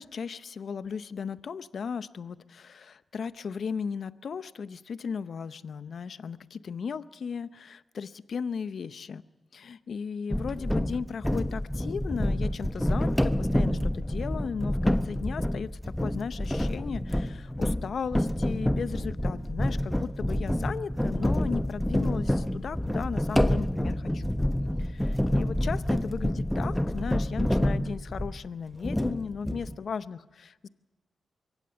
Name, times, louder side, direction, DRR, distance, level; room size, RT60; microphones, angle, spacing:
voice 1, 0.0-9.2 9.5-24.4 24.8-30.7, left 6 dB, 70° left, 15 dB, 0.7 m, -36 dB
sound 1, 10.3-28.5 28.8-29.7, left 1 dB, 10° left, 1.0 m, -28 dB
23.5 x 16.5 x 7.0 m, 1.2 s
supercardioid pair, 45°, 0 cm